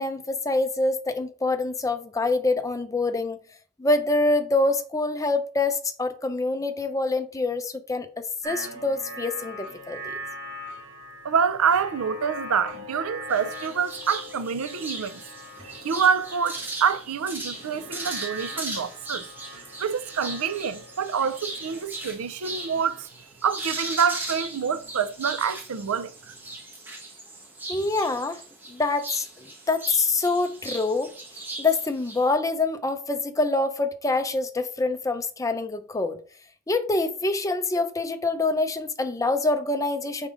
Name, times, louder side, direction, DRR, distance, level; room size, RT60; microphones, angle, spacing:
voice 1, 0.0-3.4 3.8-10.2 27.7-28.4 28.7-31.1 31.6-36.2 36.7-40.3, left 3 dB, 15° left, 0.5 m, -25 dB
sound 1, 8.4-23.0, equal, 55° right, 1.9 m, -42 dB
voice 2, 11.2-15.2 15.6-19.3 19.8-26.3, right 6 dB, 85° right, 0.5 m, -26 dB
sound 2, 13.3-32.3, right 2 dB, 10° right, 1.5 m, -38 dB
5.3 x 3.7 x 4.9 m
head